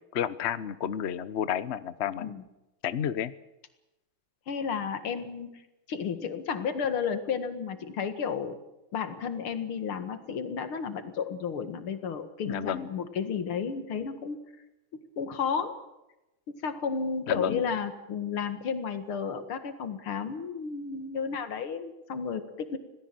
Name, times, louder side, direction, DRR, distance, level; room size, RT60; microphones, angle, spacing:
voice 1, 0.0-2.3 2.8-3.3 12.4-12.9 17.3-17.6, left 9 dB, 55° left, 15 dB, 0.7 m, -31 dB
voice 2, 4.5-5.6 5.9-8.6 8.9-14.4 14.9-15.7 16.6-22.8, left 6 dB, 80° left, 9 dB, 2.7 m, -32 dB
27.0 x 18.0 x 7.7 m, 0.96 s
omnidirectional pair, 2.3 m